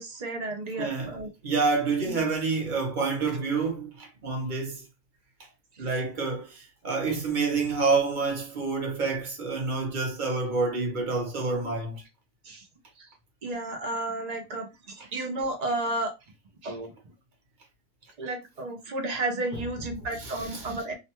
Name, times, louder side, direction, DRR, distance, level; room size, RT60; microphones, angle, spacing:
voice 1, 0.0-1.3 2.0-2.2 5.7-6.0 12.4-12.7 13.0-13.1 13.4-14.7 15.1-16.1 16.6-16.9 18.2-20.9, right 2 dB, 55° right, 0.4 m, -32 dB
voice 2, 0.8-4.9 5.8-12.0 15.0-15.1 19.5-19.6 20.2-20.8, right 4 dB, 40° right, 0.8 m, -28 dB
2.6 x 2.2 x 2.9 m
omnidirectional pair, 1.6 m